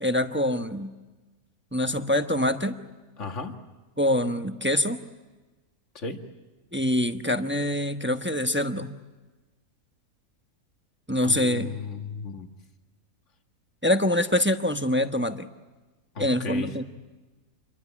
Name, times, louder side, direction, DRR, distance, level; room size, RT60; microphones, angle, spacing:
voice 1, 0.0-0.9 1.7-2.7 4.0-5.0 6.7-8.9 11.1-11.7 13.8-15.5 16.2-16.8, left 1 dB, 10° right, 6 dB, 0.9 m, -25 dB
voice 2, 3.2-3.6 5.9-6.2 11.2-12.5 16.2-16.7, left 4 dB, 55° left, 5 dB, 2.2 m, -35 dB
28.5 x 23.0 x 8.6 m, 1.2 s
omnidirectional pair, 1.5 m